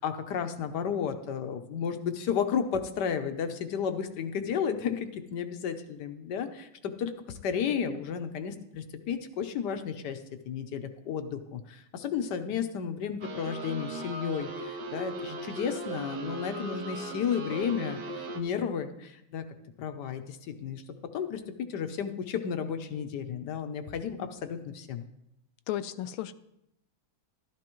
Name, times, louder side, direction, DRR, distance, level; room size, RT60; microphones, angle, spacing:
voice 1, 0.0-10.2 10.4-19.4 19.8-20.8 21.1-21.4 21.7-25.0, left 7 dB, 65° left, 8 dB, 1.3 m, -33 dB
sound 1, 13.2-18.4, right 2 dB, 60° right, 1.6 m, -38 dB
voice 2, 25.7-26.3, left 12 dB, 85° left, 12 dB, 1.4 m, -33 dB
12.5 x 12.0 x 3.1 m, 0.83 s
omnidirectional pair, 2.2 m